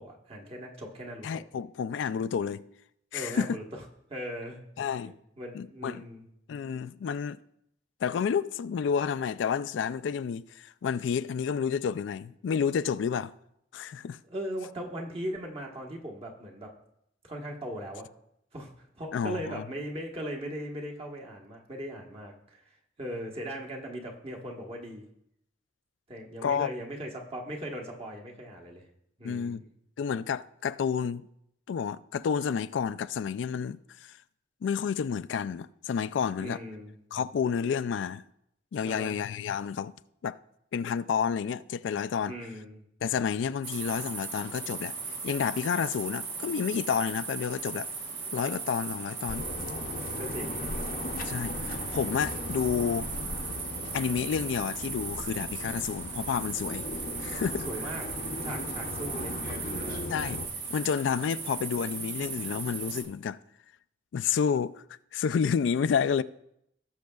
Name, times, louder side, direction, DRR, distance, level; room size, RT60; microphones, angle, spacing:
voice 1, 0.0-1.4 3.1-3.6 4.1-4.6 5.4-6.2 14.3-16.7 17.2-18.1 18.5-18.7 19.0-22.6 23.0-25.1 26.1-28.8 29.2-29.7 36.4-37.0 38.9-39.2 42.3-42.8 50.2-50.6 57.7-58.0 58.4-60.0, equal, 30° right, 1.3 m, -39 dB
voice 2, 1.2-2.6 3.1-3.6 4.8-5.1 5.5-6.1 6.5-7.4 8.0-13.3 13.7-14.2 19.1-19.6 26.4-26.7 29.2-29.6 30.0-31.2 31.7-34.1 34.6-36.6 37.1-38.2 38.7-39.9 40.2-40.4 40.7-42.3 43.0-44.9 45.2-47.9 48.3-49.5 51.2-53.1 53.9-56.9 57.2-57.7 60.1-60.4 60.7-63.4 64.1-64.8 65.1-66.2, left 7 dB, 80° left, 0.3 m, -30 dB
sound 1, 43.6-63.0, right 4 dB, 80° right, 1.9 m, -37 dB
sound 2, 49.3-60.5, left 2 dB, 50° left, 0.7 m, -38 dB
18.0 x 6.4 x 2.3 m
head